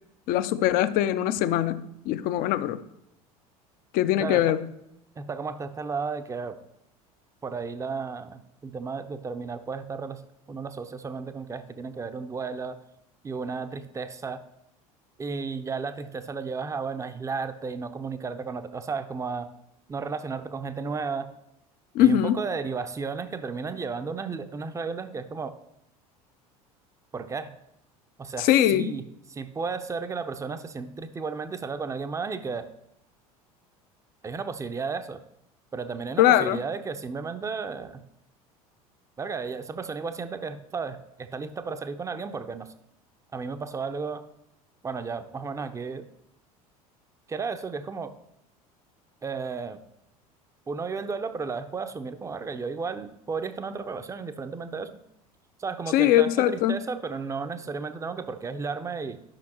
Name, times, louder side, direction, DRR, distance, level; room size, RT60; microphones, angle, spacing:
voice 1, 0.3-2.8 3.9-4.6 21.9-22.4 28.4-28.9 36.2-36.6 55.9-56.8, left 12 dB, 50° left, 13 dB, 0.6 m, -22 dB
voice 2, 4.2-4.6 5.2-6.6 7.4-10.2 10.5-12.8 13.2-14.4 15.2-19.5 19.9-21.3 22.0-25.6 27.1-27.6 28.2-29.0 29.3-32.7 34.2-35.2 35.7-38.0 39.2-42.7 43.3-44.2 44.8-46.0 47.3-48.1 49.2-49.8 50.7-54.9 55.6-59.2, right 5 dB, 15° right, 10 dB, 0.6 m, -33 dB
11.5 x 5.8 x 2.9 m, 0.81 s
figure-of-eight pair, 70°, 19 cm